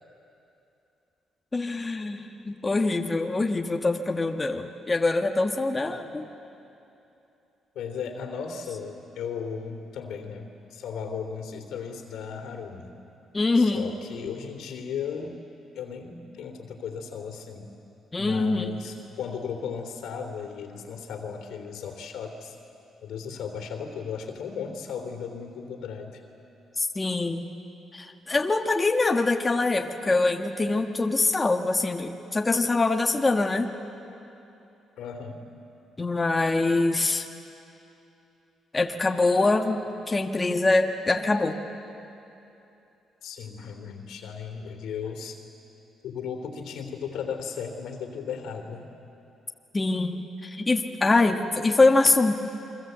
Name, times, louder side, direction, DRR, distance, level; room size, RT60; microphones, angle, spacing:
voice 1, 1.5-6.3 13.3-13.9 18.1-18.8 26.8-27.5 27.9-33.7 36.0-37.3 38.7-41.6 49.7-52.3, left 3 dB, 20° left, 3 dB, 1.4 m, -24 dB
voice 2, 7.7-12.9 13.5-15.4 15.7-17.7 18.2-22.6 23.0-26.2 35.0-35.4 43.2-45.4 46.0-48.9, left 6 dB, 80° left, 4 dB, 2.9 m, -36 dB
28.5 x 23.5 x 8.0 m, 2.9 s
cardioid pair, 90°, 0 cm